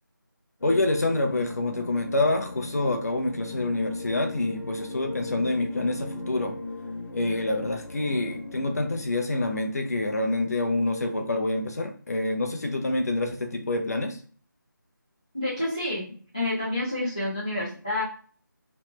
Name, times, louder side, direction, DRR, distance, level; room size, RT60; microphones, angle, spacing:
sound 1, 0.6-9.0, left 2 dB, 85° left, 0.7 m, -38 dB
voice 1, 0.6-6.5 7.1-14.2, left 2 dB, 50° left, 5 dB, 0.6 m, -27 dB
voice 2, 15.3-18.0, left 1 dB, 15° left, -9 dB, 0.4 m, -29 dB
3.0 x 2.1 x 3.0 m, 0.43 s
figure-of-eight pair, 175°, 11 cm